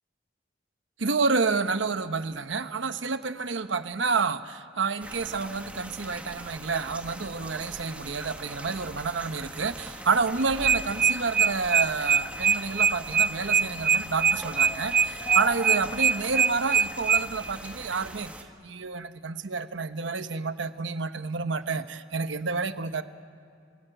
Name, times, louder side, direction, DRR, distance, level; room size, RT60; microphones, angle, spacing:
voice 1, 1.0-18.3 18.6-23.0, right 4 dB, 90° right, 11 dB, 1.0 m, -29 dB
sound 1, 5.0-18.4, right 1 dB, 10° right, 1.5 m, -42 dB
sound 2, 7.6-17.8, right 1 dB, 30° left, 6.0 m, -46 dB
sound 3, 10.4-17.2, right 6 dB, 55° right, 0.8 m, -22 dB
28.5 x 19.0 x 9.1 m, 2.4 s
head